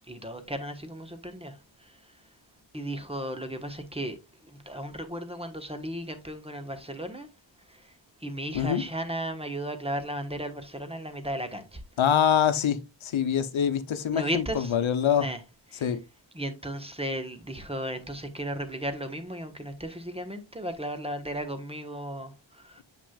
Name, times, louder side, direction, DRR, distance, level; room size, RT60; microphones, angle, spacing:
voice 1, 0.1-1.5 1.8-1.9 2.7-4.2 4.5-7.3 7.7-7.9 8.2-11.8 14.1-14.7 15.2-15.4 15.7-15.9 16.3-22.8, right 1 dB, 10° right, 1.2 m, -35 dB
voice 2, 12.0-15.3 15.8-16.0, left 8 dB, 80° left, 0.9 m, -25 dB
7.6 x 5.9 x 2.4 m
wide cardioid pair, 95°, 47 cm